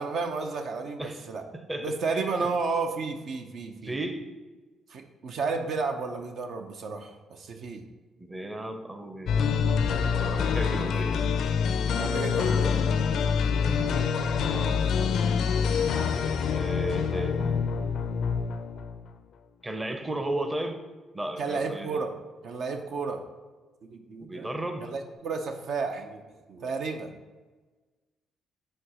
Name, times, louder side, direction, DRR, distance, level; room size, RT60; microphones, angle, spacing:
voice 1, 0.0-1.4 1.8-3.9 4.9-7.8 10.1-10.8 12.0-12.8 13.8-13.9 15.0-15.3 21.4-22.1 22.4-23.2 23.8-24.5 24.8-26.2 26.5-27.2, right 4 dB, 65° right, 5 dB, 0.6 m, -32 dB
voice 2, 1.5-2.5 3.8-4.3 8.2-9.5 10.2-11.2 13.5-13.9 14.5-14.9 16.5-17.6 19.6-20.8 21.1-22.0 24.2-24.9, right 1 dB, 15° right, 6 dB, 0.7 m, -34 dB
sound 1, 9.3-19.1, left 6 dB, 70° left, 0.4 m, -26 dB
4.7 x 4.4 x 4.9 m, 1.3 s
cardioid pair, 90°, 0 cm